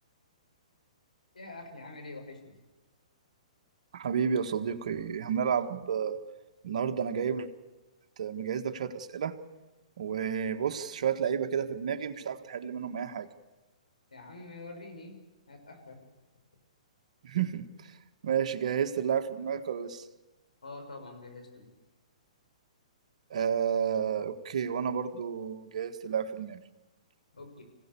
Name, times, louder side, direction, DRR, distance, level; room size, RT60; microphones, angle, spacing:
voice 1, 1.3-2.6 14.1-15.2 15.5-16.0 20.6-21.7 27.3-27.6, left 2 dB, 85° left, 3 dB, 6.2 m, -45 dB
voice 2, 3.9-6.2 6.6-7.5 8.2-9.4 10.0-13.3 17.2-17.9 18.2-20.0 23.3-26.6, right 7 dB, 65° right, 7 dB, 1.7 m, -31 dB
26.0 x 17.0 x 7.1 m, 1.1 s
hypercardioid pair, 125°, 4 cm